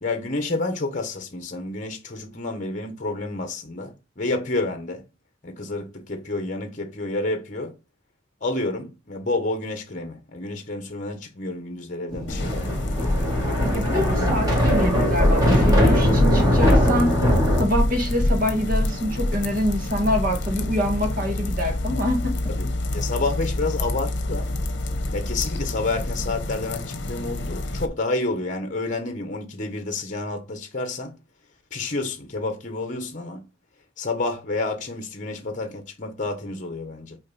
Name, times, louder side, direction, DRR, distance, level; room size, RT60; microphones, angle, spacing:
voice 1, 0.0-5.0 5.4-7.7 8.4-12.6 22.5-22.7 22.9-24.5 25.1-31.2 31.7-33.5 34.0-37.2, left 2 dB, 40° left, 1.1 m, -29 dB
Thunder, 12.1-17.6, equal, 20° right, 3.2 m, -21 dB
sound 1, 12.3-27.9, left 1 dB, 65° left, 1.0 m, -26 dB
voice 2, 13.6-17.3 17.6-22.4, equal, 50° right, 1.9 m, -25 dB
6.3 x 4.5 x 4.1 m
head